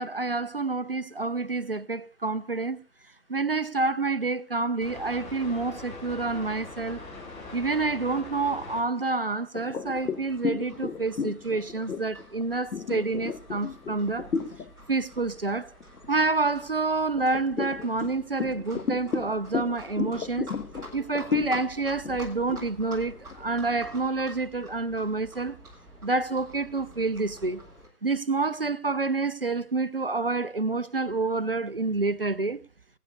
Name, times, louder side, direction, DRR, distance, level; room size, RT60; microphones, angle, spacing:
voice 1, 0.0-2.8 3.3-7.0 7.5-14.3 14.9-15.7 16.1-20.5 20.9-25.6 26.0-27.6 28.0-32.6, right 3 dB, 40° right, 0.4 m, -28 dB
sound 1, 3.6-3.7 4.6-8.9 9.2-9.4 9.7-16.4, left 3 dB, 15° left, 5.1 m, -45 dB
sound 2, 9.6-14.7 15.1-15.4 15.8-16.6 17.2-23.9, left 5 dB, 70° left, 1.1 m, -33 dB
Livestock farm animals working animals, 9.8-27.9, right 1 dB, 5° right, 2.1 m, -49 dB
21.0 x 9.2 x 2.5 m
figure-of-eight pair, 140°, 48 cm